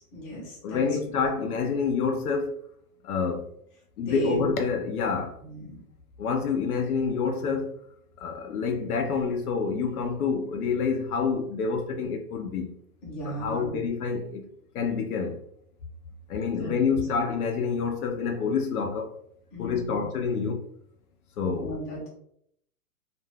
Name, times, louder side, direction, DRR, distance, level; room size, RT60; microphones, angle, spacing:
voice 1, 0.1-0.8 4.0-4.4 5.4-5.8 13.0-13.8 16.5-16.7 19.5-20.1 21.4-22.1, right 1 dB, 20° left, 0.8 m, -36 dB
voice 2, 0.6-2.6 3.0-3.4 4.0-5.4 6.2-7.8 8.2-12.8 13.3-14.5 14.7-15.4 16.3-19.2 19.6-20.6 21.4-21.7, left 5 dB, 70° left, 0.6 m, -27 dB
2.5 x 2.2 x 3.3 m
hypercardioid pair, 165°, 47 cm